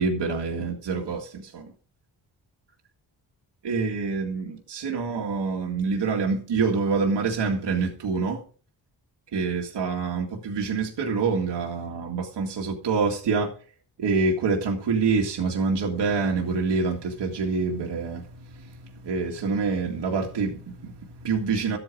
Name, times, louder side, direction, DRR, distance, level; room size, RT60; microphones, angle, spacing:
voice 1, 0.0-1.7 3.6-8.4 9.3-13.5 14.0-21.8, right 4 dB, 75° right, 2.0 m, -26 dB
12.5 x 8.9 x 4.7 m
cardioid pair, 85°, 42 cm